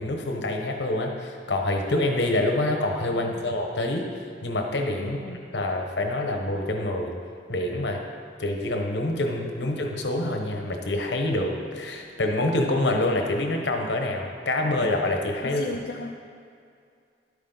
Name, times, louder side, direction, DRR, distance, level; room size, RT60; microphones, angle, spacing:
voice 1, 0.0-4.1 4.4-5.2 5.5-7.1 7.5-8.0 8.4-15.6, left 1 dB, 85° left, 3 dB, 1.2 m, -26 dB
voice 2, 3.1-3.4 5.0-5.4 15.4-16.2, left 2 dB, 65° left, -1 dB, 0.6 m, -37 dB
11.5 x 8.4 x 4.0 m, 2.3 s
head